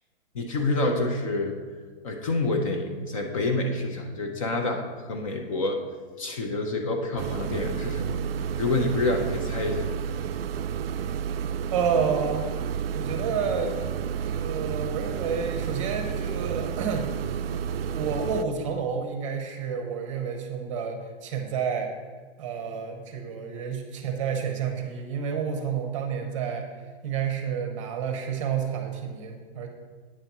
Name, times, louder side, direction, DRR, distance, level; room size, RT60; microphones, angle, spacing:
voice 1, 0.3-1.6 2.0-5.8 6.2-8.2 8.6-9.9, left 2 dB, 30° left, 4 dB, 0.6 m, -27 dB
sound 1, 7.2-18.4, right 8 dB, 65° right, 0.4 m, -31 dB
voice 2, 11.7-12.5 12.9-13.8 14.2-17.1 17.9-21.9 22.4-26.7 27.0-29.7, right 6 dB, 30° right, 4 dB, 0.7 m, -29 dB
8.8 x 4.1 x 5.9 m, 1.5 s
supercardioid pair, 175°, 32 cm